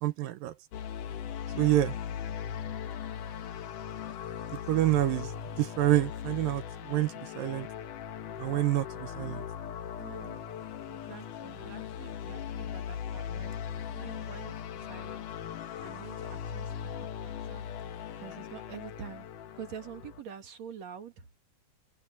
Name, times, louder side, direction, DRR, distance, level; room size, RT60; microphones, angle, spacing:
voice 1, 0.0-0.5 1.6-2.0 4.7-5.3 5.6-7.7 8.4-9.4, right 14 dB, 75° right, 2.6 m, -27 dB
sound 1, 0.7-20.2, left 8 dB, 65° left, 2.8 m, -39 dB
voice 2, 10.0-10.5 10.9-13.6 13.9-15.3 15.8-16.7 17.0-17.7 18.2-19.3 19.6-21.3, right 8 dB, 50° right, 3.3 m, -46 dB
open air
omnidirectional pair, 4.2 m